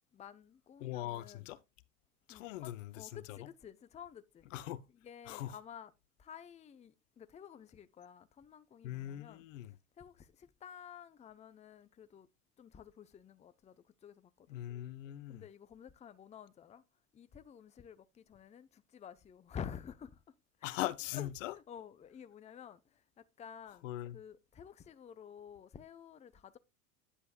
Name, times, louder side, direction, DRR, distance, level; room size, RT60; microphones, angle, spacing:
voice 1, 0.1-1.5 2.3-4.5 4.9-5.9 6.2-9.5 10.0-12.3 12.6-14.6 15.3-16.8 17.1-20.8 21.1-21.3 21.5-26.6, left 8 dB, 15° left, 0.6 m, -51 dB
voice 2, 0.8-1.6 2.3-3.5 4.5-4.8 5.3-5.6 8.8-9.8 14.5-15.4 20.6-21.6 23.8-24.2, left 14 dB, 55° left, 0.6 m, -41 dB
9.8 x 8.1 x 2.2 m
figure-of-eight pair, 80°, 45 cm